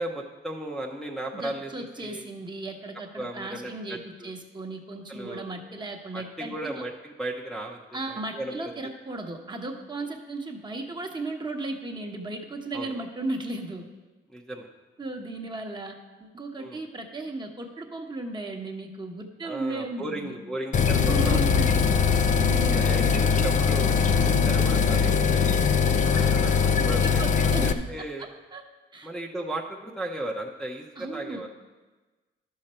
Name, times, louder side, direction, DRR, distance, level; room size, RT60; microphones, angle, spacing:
voice 1, 0.0-2.3 3.2-4.3 5.1-5.4 6.1-8.6 12.7-13.0 14.3-14.7 16.6-16.8 19.4-21.4 22.7-25.6 26.0-28.3 29.0-31.5, right 1 dB, ahead, -3 dB, 0.9 m, -36 dB
voice 2, 1.3-6.8 7.9-13.9 15.0-20.4 21.0-22.0 22.3-23.2 24.2-24.6 26.8-28.6 28.9-29.1 31.0-31.4, right 2 dB, 20° right, 3 dB, 1.2 m, -36 dB
sound 1, 20.7-27.7, left 6 dB, 40° left, 0.5 m, -21 dB
11.5 x 6.6 x 4.4 m, 1.2 s
cardioid pair, 90°, 20 cm